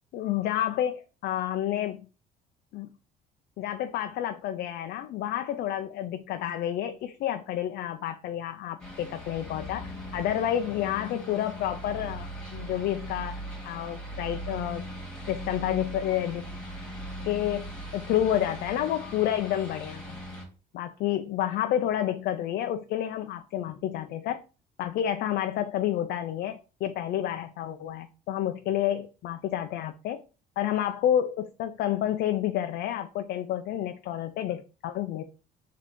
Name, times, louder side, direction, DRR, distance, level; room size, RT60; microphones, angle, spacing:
voice 1, 0.1-2.1 2.7-2.9 3.6-14.9 15.3-16.4 17.3-20.2 20.7-24.4 24.8-30.2 30.6-35.2, left 11 dB, 70° left, 0.4 m, -29 dB
sound 1, 8.8-20.5, equal, 5° left, 1.7 m, -39 dB
4.2 x 2.8 x 4.5 m
cardioid pair, 110°, 17 cm